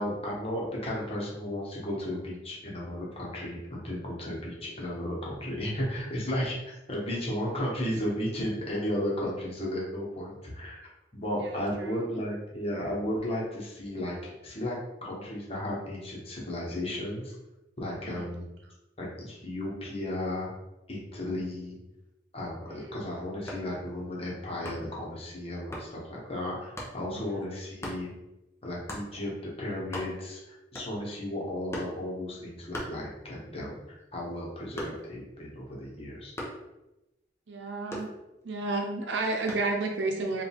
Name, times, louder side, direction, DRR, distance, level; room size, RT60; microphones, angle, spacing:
voice 1, 0.0-10.8 11.1-14.8 15.0-17.3 17.8-18.5 19.0-20.5 20.9-21.8 22.3-28.1 28.6-36.3, left 1 dB, 35° left, -4 dB, 1.2 m, -34 dB
voice 2, 11.3-12.0 18.0-18.3 22.7-23.1 27.2-27.5 37.5-38.1 38.4-40.4, right 3 dB, 75° right, 2 dB, 0.7 m, -32 dB
sound 1, 23.5-23.8 24.6-25.0 25.7-25.9 26.8-27.0 27.8-28.1 28.9-29.1 29.5-29.6 29.8-30.4 30.7-31.2 31.7-32.0 32.7-33.5 33.9-35.2 36.4-36.7 37.9-38.6 39.5-39.8, equal, 15° left, 0.8 m, -39 dB
4.8 x 2.7 x 3.6 m, 0.98 s
head